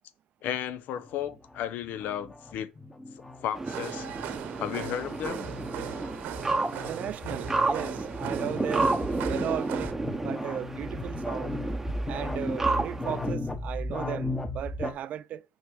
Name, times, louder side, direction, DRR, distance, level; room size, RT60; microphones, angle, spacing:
voice 1, 0.4-2.7 3.4-4.1 4.6-5.5, left 10 dB, 65° left, 0.8 m, -33 dB
sound 1, 1.0-14.9, left 1 dB, 10° left, 1.1 m, -36 dB
sound 2, 3.5-13.3, right 3 dB, 10° right, 0.8 m, -32 dB
sound 3, 3.7-9.9, right 11 dB, 70° right, 1.0 m, -39 dB
voice 2, 6.8-8.9 9.3-9.9 10.2-11.5 12.1-15.4, right 10 dB, 50° right, 0.5 m, -36 dB
6.4 x 4.7 x 6.3 m
cardioid pair, 140°, 3 cm